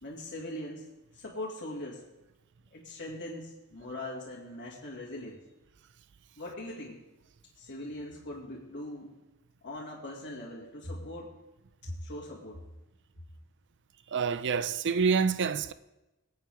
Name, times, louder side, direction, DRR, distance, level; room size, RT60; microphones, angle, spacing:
voice 1, 0.0-2.0 2.7-5.4 6.4-7.0 7.6-9.1 9.6-11.3 11.8-12.6, left 1 dB, 55° left, 2.2 m, -41 dB
voice 2, 14.1-15.7, right 5 dB, 55° right, 0.5 m, -27 dB
21.5 x 8.8 x 3.5 m
head